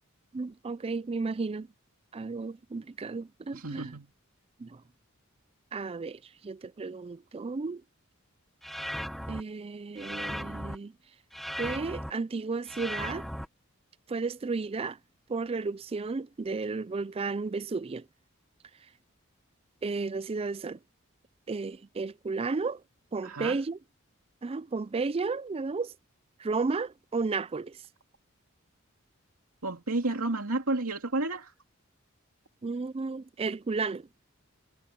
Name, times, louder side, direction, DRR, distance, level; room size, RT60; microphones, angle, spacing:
voice 1, 0.3-1.7 2.1-4.0 4.6-4.8 5.7-7.8 9.3-10.9 11.6-13.3 14.1-15.0 15.3-18.0 19.8-20.8 21.5-22.8 23.1-23.8 24.4-25.9 26.4-27.8 32.6-34.1, right 4 dB, 25° right, 0.4 m, -33 dB
voice 2, 3.5-4.1 23.2-23.6 29.6-31.5, right 2 dB, 90° right, 2.6 m, -31 dB
sound 1, 8.6-9.4 10.0-10.8 11.3-12.1 12.7-13.5, equal, ahead, 1.3 m, -36 dB
head